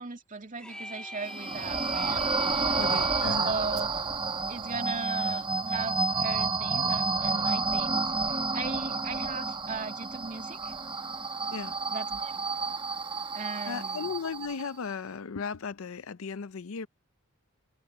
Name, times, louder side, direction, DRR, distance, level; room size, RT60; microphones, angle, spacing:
voice 1, 0.0-2.3 3.4-4.1 4.5-10.7 11.9-12.4 13.3-14.1, right 4 dB, 40° right, 2.4 m, -38 dB
sound 1, 0.6-3.4, equal, 5° left, 2.6 m, -42 dB
sound 2, 1.3-14.7, right 4 dB, 25° right, 1.1 m, -30 dB
voice 2, 2.8-3.5 11.5-11.7 13.7-16.9, left 5 dB, 75° left, 0.6 m, -36 dB
head